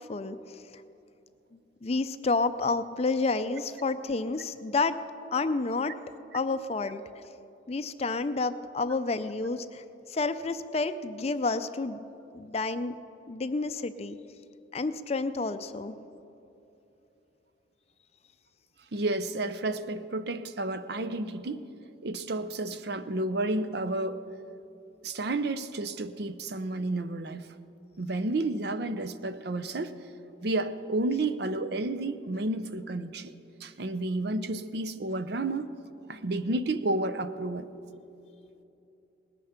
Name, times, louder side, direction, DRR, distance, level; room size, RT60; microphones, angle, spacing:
voice 1, 0.1-0.6 1.8-5.0 5.3-5.9 6.3-7.2 7.7-12.0 12.3-12.9 13.3-14.2 14.7-16.0, left 3 dB, 30° left, 0.4 m, -30 dB
voice 2, 18.9-21.6 22.0-24.2 25.0-27.5 28.0-29.9 30.4-33.3 33.6-35.7 36.1-37.7, right 2 dB, 55° right, 0.6 m, -31 dB
19.0 x 10.0 x 5.8 m
head